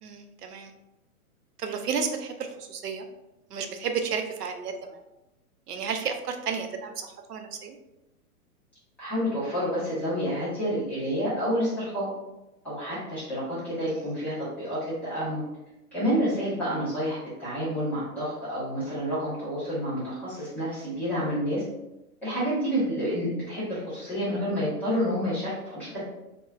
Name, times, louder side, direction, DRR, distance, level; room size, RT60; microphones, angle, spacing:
voice 1, 0.0-0.7 1.6-3.1 3.5-5.0 5.7-7.8 13.9-14.1, right 6 dB, 85° right, 5 dB, 0.6 m, -32 dB
voice 2, 9.0-12.1 12.6-15.4 15.9-21.6 22.2-26.0, equal, 5° left, -13 dB, 0.5 m, -29 dB
3.0 x 2.1 x 2.3 m, 0.95 s
hypercardioid pair, 130°, 46 cm